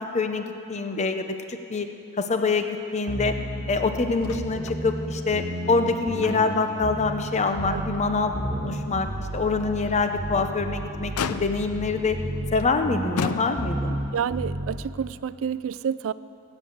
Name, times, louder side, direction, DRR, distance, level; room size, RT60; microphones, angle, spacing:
voice 1, 0.0-1.9 2.2-3.4 3.7-8.3 8.6-9.1 9.3-12.2 12.5-14.0, left 4 dB, 30° left, 7 dB, 0.7 m, -25 dB
sound 1, 3.1-14.9, right 1 dB, 20° right, 2.9 m, -32 dB
Motor vehicle (road), 4.2-4.8 5.1-5.3 5.8-6.7 7.1-7.3 7.8-7.9 10.1-10.6 11.2-11.8 12.6-12.8 13.2-14.0 15.0-15.1, left 5 dB, 75° left, 0.5 m, -33 dB
voice 2, 14.1-16.1, right 7 dB, 60° right, 17 dB, 0.3 m, -29 dB
18.5 x 8.5 x 7.8 m, 2.9 s
head